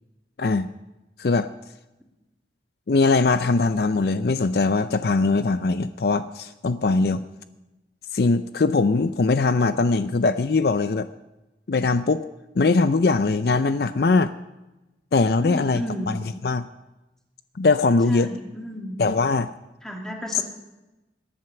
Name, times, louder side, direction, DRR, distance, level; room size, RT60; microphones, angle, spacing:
voice 1, 0.4-0.7 1.2-1.5 2.9-7.2 8.1-11.1 11.7-12.2 12.5-14.3 15.1-16.7 17.5-18.3 19.0-19.5 20.3-20.4, left 3 dB, 60° left, 12 dB, 0.5 m, -21 dB
voice 2, 15.4-16.1 18.1-19.0 19.8-20.4, equal, 5° left, 1 dB, 2.3 m, -32 dB
18.5 x 11.0 x 5.9 m, 1.0 s
head